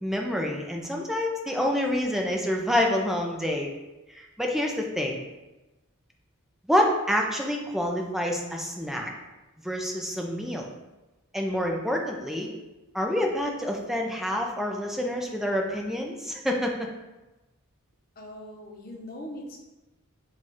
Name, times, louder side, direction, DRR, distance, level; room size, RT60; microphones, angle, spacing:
voice 1, 0.0-3.7 4.1-5.2 6.7-9.1 9.6-10.7 11.3-12.5 12.9-16.9, left 1 dB, ahead, 1 dB, 0.5 m, -27 dB
voice 2, 18.2-19.6, left 1 dB, 45° left, 0 dB, 0.8 m, -40 dB
4.6 x 2.4 x 4.2 m, 1.1 s
head